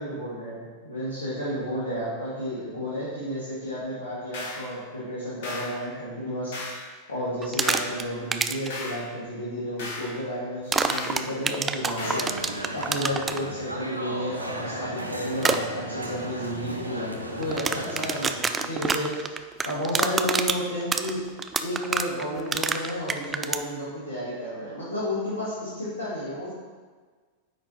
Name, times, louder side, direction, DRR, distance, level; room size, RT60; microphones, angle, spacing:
voice 1, 0.0-6.6 7.1-12.2 12.7-19.3 19.6-21.2 21.6-26.5, equal, 75° left, -9 dB, 1.7 m, -32 dB
sound 1, 4.3-4.7 5.4-5.7 6.5-6.8 7.6-7.9 8.7-9.0 9.8-10.1 10.9-11.2 12.0-12.3, left 3 dB, 55° left, 1.3 m, -35 dB
sound 2, 7.4-8.0 8.3-8.7 10.7-13.4 15.4-15.6 17.4-23.6, right 5 dB, 15° right, 0.3 m, -26 dB
sound 3, 12.0-18.3, right 1 dB, 90° right, 0.6 m, -35 dB
9.3 x 4.4 x 2.9 m, 1.5 s
figure-of-eight pair, 90°, 0 cm